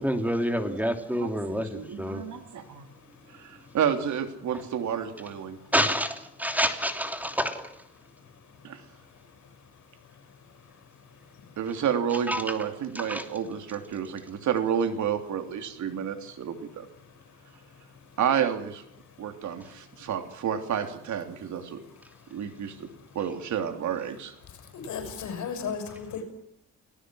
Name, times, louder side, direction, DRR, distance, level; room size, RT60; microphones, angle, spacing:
voice 1, 0.0-2.2 5.7-7.7 12.3-12.5 12.9-13.3, equal, 5° right, 6 dB, 3.0 m, -28 dB
voice 2, 1.7-2.9 3.4-5.6 8.6-8.8 11.6-16.9 18.2-18.8 19.2-21.8 22.3-22.9 23.1-24.3, right 8 dB, 70° right, 7 dB, 3.1 m, -30 dB
voice 3, 24.8-26.2, left 6 dB, 75° left, 6 dB, 6.2 m, -34 dB
29.5 x 19.0 x 6.3 m, 0.69 s
cardioid pair, 90°, 30 cm